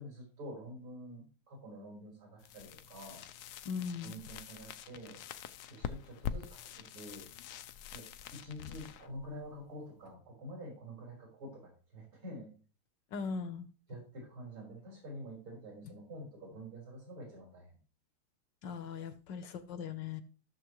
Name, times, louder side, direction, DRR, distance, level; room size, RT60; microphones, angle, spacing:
voice 1, 0.0-3.2 4.0-5.2 5.7-7.3 7.9-8.0 8.3-12.5 13.9-17.8, equal, 70° right, -3 dB, 5.1 m, -47 dB
sound 1, 2.4-10.1, left 9 dB, 85° left, 0.8 m, -45 dB
voice 2, 3.6-4.1 13.1-13.7 18.6-20.2, left 6 dB, 65° left, 11 dB, 1.3 m, -39 dB
14.5 x 6.9 x 3.1 m, 0.37 s
omnidirectional pair, 2.4 m